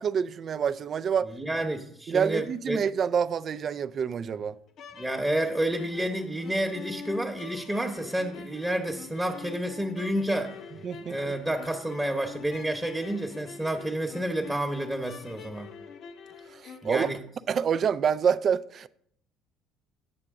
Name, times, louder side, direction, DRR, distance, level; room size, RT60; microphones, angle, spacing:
voice 1, 0.0-1.3 2.1-4.6 10.8-11.2 16.5-17.1 17.5-18.9, right 7 dB, 45° right, 0.4 m, -27 dB
voice 2, 1.3-2.8 5.0-10.6 11.1-15.7 16.8-17.2, right 1 dB, 10° right, 1.0 m, -30 dB
sound 1, 4.7-17.0, left 6 dB, 55° left, 0.7 m, -45 dB
8.5 x 6.6 x 3.6 m
hypercardioid pair, 65°, 0 cm